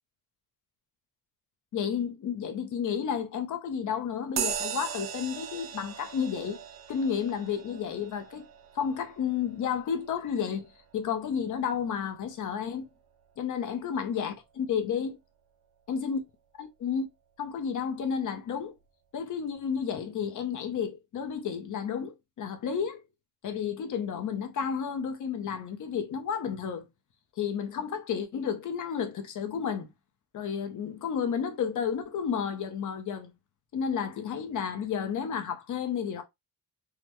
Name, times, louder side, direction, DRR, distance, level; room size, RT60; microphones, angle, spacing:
voice 1, 1.7-6.6 6.9-8.5 8.7-10.7 10.9-12.9 13.4-15.2 15.9-16.2 16.6-17.1 17.4-18.7 19.1-23.0 23.4-26.8 27.4-29.9 30.3-33.3 33.7-36.2, left 7 dB, 55° left, 0.8 m, -31 dB
sound 1, 4.4-12.3, right 9 dB, 80° right, 0.7 m, -39 dB
3.6 x 2.2 x 3.0 m
cardioid pair, 115°, 38 cm